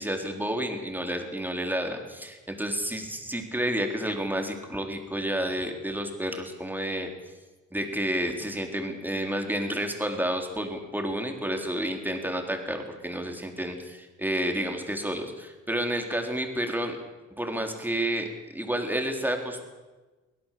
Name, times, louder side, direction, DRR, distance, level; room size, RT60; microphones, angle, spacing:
voice 1, 0.0-7.1 7.7-17.0 17.4-18.3 18.5-19.6, right 1 dB, 5° right, 3 dB, 4.2 m, -30 dB
24.0 x 17.0 x 7.7 m, 1.2 s
cardioid pair, 90°, 30 cm